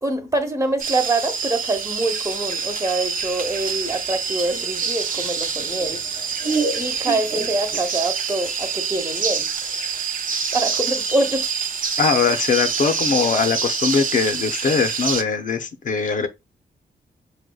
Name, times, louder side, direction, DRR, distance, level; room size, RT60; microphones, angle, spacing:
voice 1, 0.0-10.0 10.5-11.5, right 2 dB, 20° right, 0.8 m, -25 dB
sound 1, 0.8-15.2, right 6 dB, 55° right, 0.5 m, -26 dB
Laughter, 4.5-8.1, right 3 dB, 85° right, 1.2 m, -29 dB
voice 2, 12.0-16.3, left 5 dB, 55° left, 0.5 m, -21 dB
4.8 x 2.1 x 2.2 m
cardioid pair, 80°, 16 cm